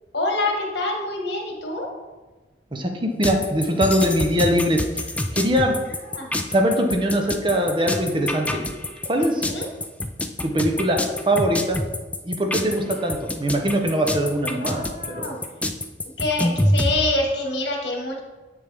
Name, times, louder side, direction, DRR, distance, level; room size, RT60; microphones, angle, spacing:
voice 1, 0.1-1.9 6.0-6.3 9.2-9.7 14.5-15.4 16.2-18.2, left 2 dB, 80° left, 0 dB, 1.6 m, -26 dB
voice 2, 2.7-5.7 6.5-8.6 9.0-9.4 10.4-11.0 11.3-11.8 12.2-15.3, equal, 30° right, 3 dB, 0.7 m, -22 dB
sound 1, 3.2-16.9, left 1 dB, 10° left, 0.3 m, -26 dB
7.7 x 6.6 x 3.5 m, 1.2 s
head